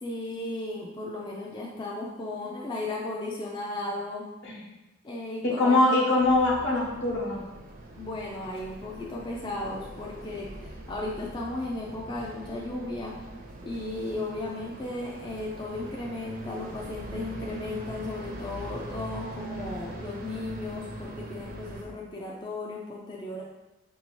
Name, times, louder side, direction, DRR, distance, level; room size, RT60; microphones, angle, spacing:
voice 1, 0.0-4.3 5.0-5.8 8.0-13.2 13.6-23.4, left 2 dB, 20° left, -3 dB, 0.3 m, -35 dB
voice 2, 5.4-7.4, left 2 dB, 65° left, -4 dB, 1.0 m, -23 dB
sound 1, 6.2-21.9, right 1 dB, 45° right, 0.5 m, -42 dB
4.1 x 2.7 x 3.0 m, 1.0 s
head